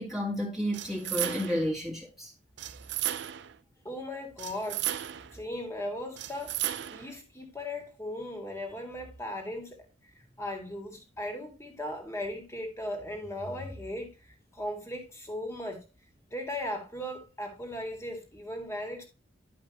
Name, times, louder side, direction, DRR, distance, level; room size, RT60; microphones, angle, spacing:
voice 1, 0.0-2.3, equal, ahead, 1.8 m, -31 dB
sound 1, 0.7-1.7 2.6-3.6 4.4-5.4 6.2-7.1, right 12 dB, 60° right, 0.5 m, -34 dB
voice 2, 3.8-4.9 5.1-9.9 10.1-15.8 16.3-19.0, left 1 dB, 15° left, 1.9 m, -37 dB
11.0 x 5.4 x 2.9 m
head